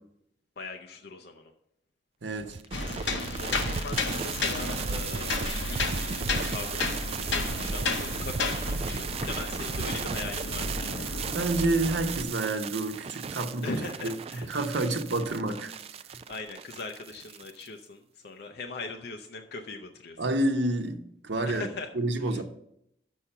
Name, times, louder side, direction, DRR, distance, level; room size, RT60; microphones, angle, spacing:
voice 1, 0.6-1.5 3.3-10.9 13.6-14.5 16.3-20.2 21.5-21.9, left 3 dB, 60° left, 0.6 m, -40 dB
voice 2, 2.2-2.6 11.3-13.7 14.0-15.7 20.2-21.7 21.9-22.4, right 2 dB, 85° right, 1.0 m, -29 dB
sound 1, 2.4-17.7, right 6 dB, 35° right, 0.3 m, -35 dB
sound 2, 2.7-12.2, left 3 dB, 90° left, 0.9 m, -32 dB
6.3 x 5.7 x 6.7 m
head